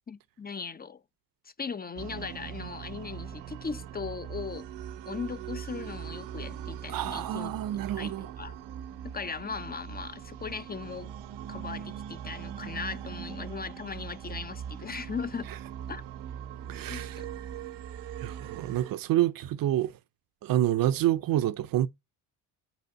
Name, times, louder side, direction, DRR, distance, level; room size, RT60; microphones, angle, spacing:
voice 1, 0.1-1.0 1.4-4.7 5.1-8.5 9.0-11.1 11.5-15.5 15.9-16.0 16.9-17.3, left 5 dB, 25° left, 0.6 m, -38 dB
sound 1, 2.0-18.9, right 9 dB, 90° right, 0.8 m, -41 dB
voice 2, 6.9-8.3 16.7-17.2 18.2-19.9 20.4-21.9, right 13 dB, 60° right, 0.6 m, -28 dB
9.3 x 4.0 x 5.5 m
cardioid pair, 95°, 40 cm